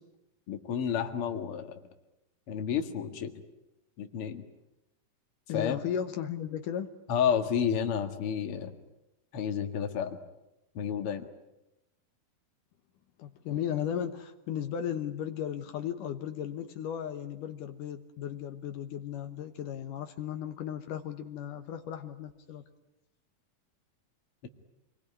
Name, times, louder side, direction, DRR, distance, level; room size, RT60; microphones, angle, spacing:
voice 1, 0.5-1.8 2.5-3.3 4.0-4.4 5.5-5.8 7.1-8.8 9.3-10.2 10.7-11.3, left 8 dB, 45° left, 5 dB, 2.4 m, -30 dB
voice 2, 5.5-6.9 13.2-22.6, left 9 dB, 75° left, 6 dB, 2.7 m, -35 dB
27.0 x 21.5 x 9.7 m, 0.92 s
omnidirectional pair, 4.0 m